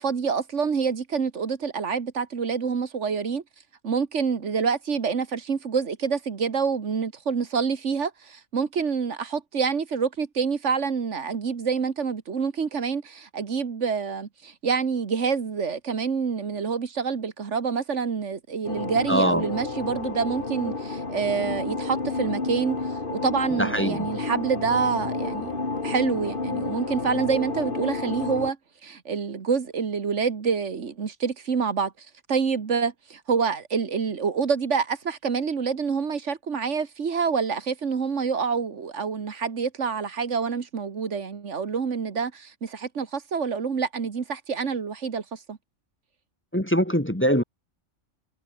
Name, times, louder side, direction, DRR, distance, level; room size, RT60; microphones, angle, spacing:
voice 1, 0.0-3.4 3.8-25.6 25.8-28.6 28.8-45.6, right 5 dB, 75° right, 1.8 m, -27 dB
sound 1, 18.6-28.5, left 3 dB, 45° left, 2.5 m, -31 dB
voice 2, 19.1-19.4 23.6-24.1 46.5-47.4, equal, 10° left, 1.6 m, -22 dB
omnidirectional pair, 1.2 m